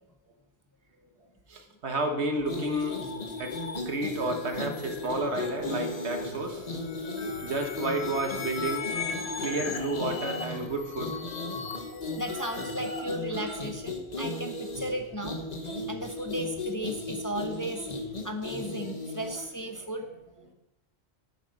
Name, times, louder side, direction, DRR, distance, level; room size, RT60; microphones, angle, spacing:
voice 1, 1.5-3.0 3.4-3.5 3.9-6.7 7.4-9.1 9.4-11.1 12.3-12.4 12.9-13.0 13.4-13.6 19.8-19.9, right 2 dB, 80° right, 4 dB, 1.7 m, -31 dB
sound 1, 2.4-13.1, left 5 dB, 75° left, 1.2 m, -40 dB
sound 2, 2.4-19.5, left 2 dB, 40° left, 1.3 m, -36 dB
Piano, 5.1-12.0, equal, 10° right, 3.8 m, -47 dB
voice 2, 12.2-15.4 15.9-17.9 18.2-20.1, equal, 20° left, 4 dB, 0.7 m, -35 dB
9.6 x 8.3 x 5.3 m, 0.95 s
omnidirectional pair, 1.1 m